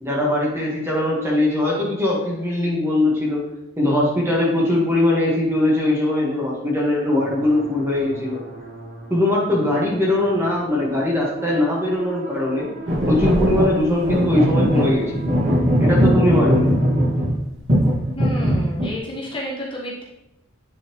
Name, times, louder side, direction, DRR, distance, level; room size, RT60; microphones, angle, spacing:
voice 1, 0.0-8.4 9.1-12.7 13.1-15.3 15.8-16.7, left 1 dB, 10° right, -4 dB, 1.6 m, -21 dB
sound 1, 7.2-17.1, right 2 dB, 45° right, 1.0 m, -37 dB
sound 2, 12.9-17.4 17.7-18.9, equal, 60° right, 2.0 m, -19 dB
voice 2, 18.1-20.0, equal, 25° left, -5 dB, 1.4 m, -30 dB
9.8 x 4.2 x 3.1 m, 0.88 s
head